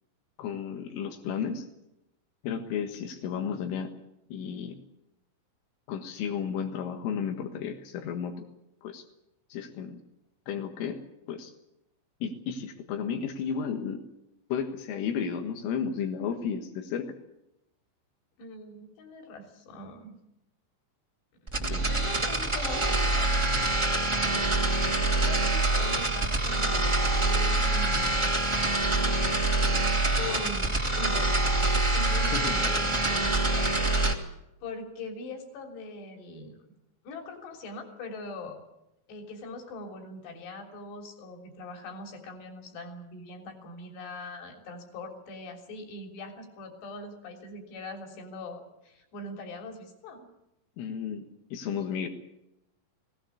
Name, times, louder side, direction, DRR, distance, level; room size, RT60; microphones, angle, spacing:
voice 1, 0.4-1.7 2.4-3.9 4.3-4.8 5.9-8.5 8.8-9.0 9.5-10.0 10.5-11.0 11.3-11.5 12.2-14.0 14.5-17.1 21.6-22.0 24.3-24.5 32.3-32.4 50.8-52.1, left 7 dB, 90° left, 4 dB, 4.2 m, -33 dB
voice 2, 18.4-20.2 21.4-23.3 25.1-28.3 28.7-29.6 30.2-31.4 31.6-34.2 34.6-36.5 37.1-38.6 39.1-50.3, left 2 dB, 60° left, 4 dB, 5.4 m, -42 dB
sound 1, 21.5-34.1, right 2 dB, 15° right, 1.0 m, -25 dB
20.5 x 18.5 x 8.5 m, 0.85 s
omnidirectional pair, 5.6 m